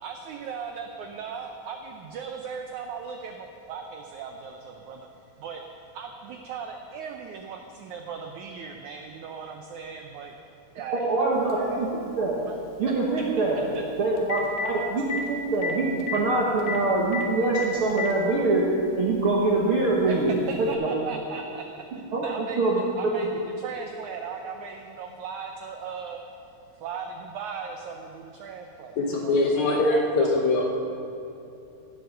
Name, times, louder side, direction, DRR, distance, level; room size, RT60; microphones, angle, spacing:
voice 1, 0.0-5.1 5.4-5.6 5.9-10.4 10.7-11.9 12.5-12.6 12.9-13.0 13.7-13.8 20.1-20.2 20.5-21.7 21.9-26.2 26.7-30.3, right 6 dB, 90° right, 4 dB, 1.6 m, -37 dB
voice 2, 10.9-11.9 12.2-12.4 12.8-18.7 18.9-20.9 22.1-22.8, right 2 dB, 60° right, -4 dB, 1.4 m, -24 dB
Telephone, 11.5-11.6 13.8-13.9 14.2-14.7 15.1-15.2 15.6-15.7 16.0-16.2 16.7-16.8 17.1-17.2 17.6-18.1 19.1-19.2 20.7-20.8, left 5 dB, 85° left, 3.2 m, -30 dB
voice 3, 29.0-30.6, left 2 dB, 65° left, 0 dB, 1.9 m, -22 dB
16.5 x 7.9 x 6.7 m, 2.8 s
omnidirectional pair, 4.4 m